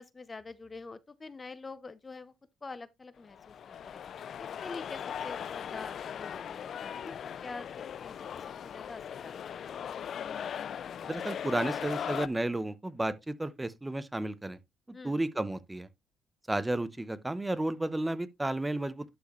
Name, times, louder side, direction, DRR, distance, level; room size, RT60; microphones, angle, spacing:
voice 1, 0.0-2.3 2.6-4.0 4.4-9.7 14.9-15.1, left 3 dB, 25° left, 0.7 m, -46 dB
sound 1, 3.3-12.3, left 8 dB, 60° left, 0.4 m, -39 dB
voice 2, 11.0-14.6 14.9-15.9 16.5-19.0, right 1 dB, 15° right, 0.8 m, -32 dB
11.5 x 4.8 x 3.1 m
cardioid pair, 90°, 0 cm